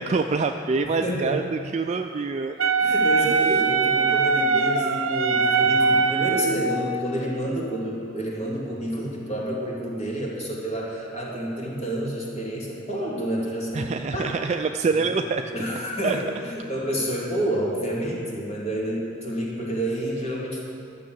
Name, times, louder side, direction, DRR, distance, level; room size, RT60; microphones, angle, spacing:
voice 1, 0.0-2.6 3.2-3.3 13.7-15.4 16.0-16.2, right 4 dB, 35° right, 5 dB, 0.3 m, -25 dB
voice 2, 0.9-1.4 2.8-14.4 15.1-15.2 15.5-20.6, right 1 dB, 30° left, -4 dB, 2.3 m, -29 dB
Wind instrument woodwind instrument, 2.6-6.8, right 4 dB, 75° right, 0.6 m, -21 dB
12.5 x 6.7 x 7.6 m, 2.6 s
head